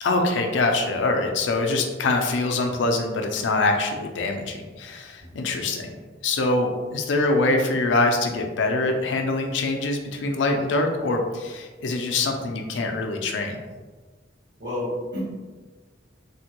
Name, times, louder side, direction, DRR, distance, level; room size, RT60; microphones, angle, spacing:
voice 1, 0.0-5.9 6.2-13.6, left 2 dB, 80° left, 3 dB, 0.4 m, -24 dB
voice 2, 14.6-15.2, left 1 dB, 65° right, -8 dB, 1.5 m, -31 dB
3.4 x 2.2 x 2.8 m, 1.3 s
head